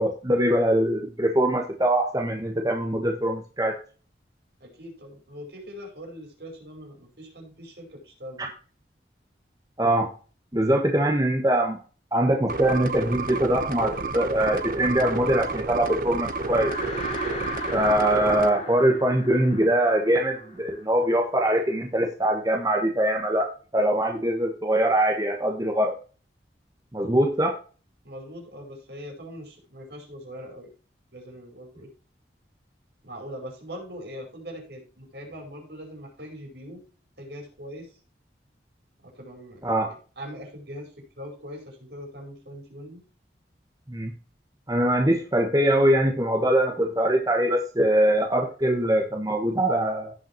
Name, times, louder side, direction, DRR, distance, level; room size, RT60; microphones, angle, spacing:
voice 1, 0.0-3.7 8.4-8.5 9.8-10.1 10.5-11.8 12.1-16.7 17.7-25.9 26.9-27.6 39.6-39.9 43.9-44.1 44.7-50.1, right 1 dB, 20° right, 2 dB, 1.2 m, -23 dB
voice 2, 4.6-8.5 17.8-17.9 28.0-30.7 31.1-31.9 33.0-36.8 37.2-38.0 39.0-43.0, equal, 75° right, 1 dB, 5.1 m, -41 dB
sound 1, 12.5-18.5, right 3 dB, 50° right, 0.9 m, -31 dB
sound 2, 16.1-21.5, equal, 40° left, 4.6 m, -37 dB
16.5 x 5.6 x 3.0 m, 0.38 s
head